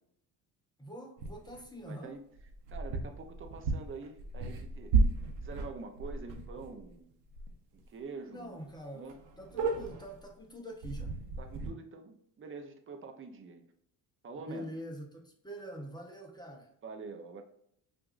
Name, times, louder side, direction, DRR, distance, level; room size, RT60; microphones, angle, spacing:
voice 1, 0.8-2.2 8.3-9.1 9.4-11.2 14.5-16.7, equal, 10° left, 1 dB, 0.8 m, -45 dB
sound 1, 1.2-1.6 2.4-6.9 7.3-7.5 7.8-7.9 8.4-8.5 8.7-8.8 9.1-10.2 10.8-11.7, right 3 dB, 85° right, 0.9 m, -33 dB
voice 2, 1.9-2.2 2.7-4.9 5.4-7.1 7.7-9.2 11.4-13.6 14.2-14.7 16.8-17.4, right 4 dB, 30° right, 5 dB, 0.7 m, -46 dB
5.7 x 2.6 x 2.5 m, 0.70 s
cardioid pair, 100°, 42 cm